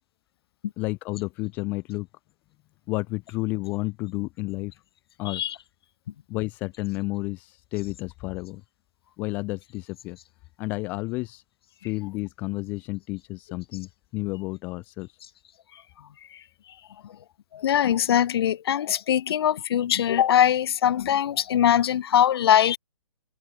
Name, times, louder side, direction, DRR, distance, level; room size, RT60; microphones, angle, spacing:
voice 1, 0.8-2.1 2.9-4.7 5.2-5.4 6.3-8.6 9.2-10.2 10.6-11.4 11.8-15.2, left 23 dB, 10° left, 0.3 m, -31 dB
voice 2, 17.5-22.8, left 10 dB, 45° left, 0.6 m, -22 dB
hypercardioid pair, 155°, 18 cm